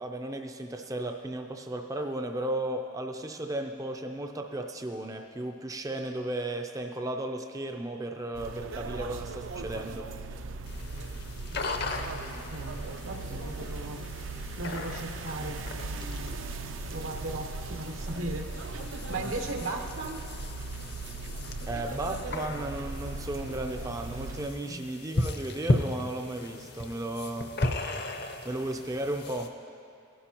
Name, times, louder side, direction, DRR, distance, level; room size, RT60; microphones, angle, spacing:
voice 1, 0.0-10.1 21.7-27.5 28.4-29.6, right 1 dB, 15° right, 4 dB, 0.4 m, -35 dB
sound 1, 8.3-24.5, right 3 dB, 70° right, 0.5 m, -38 dB
sound 2, 10.7-29.5, left 2 dB, 55° left, 0.7 m, -37 dB
voice 2, 11.5-12.2 12.5-14.0 14.6-15.6 15.9-16.5 16.9-20.2 24.6-24.9, right 2 dB, 85° right, 3 dB, 1.1 m, -38 dB
17.5 x 11.0 x 2.9 m, 2.6 s
head